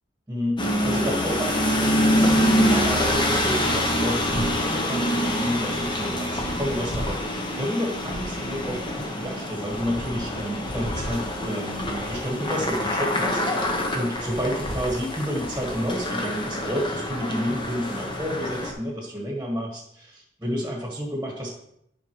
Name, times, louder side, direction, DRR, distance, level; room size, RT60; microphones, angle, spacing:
voice 1, 0.3-21.5, equal, 10° right, -1 dB, 1.4 m, -30 dB
sound 1, 0.6-18.7, equal, 25° left, 1.0 m, -25 dB
10.5 x 5.3 x 3.1 m, 0.74 s
head